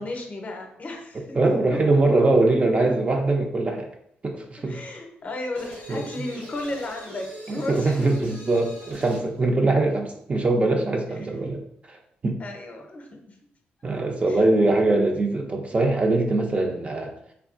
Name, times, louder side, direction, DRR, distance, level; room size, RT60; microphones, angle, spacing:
voice 1, 0.0-2.0 4.7-8.4 12.4-13.4 14.3-14.4, left 2 dB, 45° left, 2 dB, 0.6 m, -34 dB
voice 2, 1.4-3.9 4.2-4.8 5.9-6.0 7.5-11.6 11.9-12.4 13.8-17.1, right 2 dB, 35° right, 2 dB, 0.4 m, -22 dB
sound 1, 5.5-9.3, right 1 dB, 85° right, 1.0 m, -43 dB
3.3 x 2.2 x 2.4 m, 0.74 s
cardioid pair, 80°, 4 cm